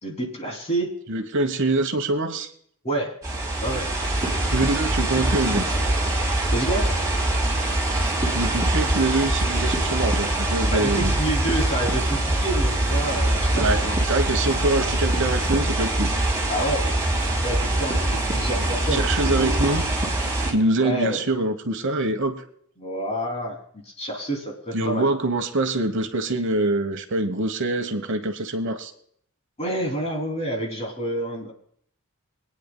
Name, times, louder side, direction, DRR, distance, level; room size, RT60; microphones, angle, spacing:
voice 1, 0.0-0.9 2.8-3.1 3.6-3.9 6.5-6.9 10.7-14.0 16.5-16.8 17.4-18.0 18.3-19.6 20.8-21.2 22.8-25.1 29.6-31.5, right 1 dB, 30° left, 0 dB, 2.8 m, -28 dB
voice 2, 1.1-2.5 4.5-5.7 8.3-11.1 13.5-16.1 18.5-18.7 18.9-19.8 20.5-22.4 24.7-28.9, right 2 dB, 55° right, 7 dB, 1.1 m, -24 dB
sound 1, 3.2-20.5, right 1 dB, 15° right, 2.8 m, -23 dB
25.0 x 9.5 x 2.2 m, 0.64 s
head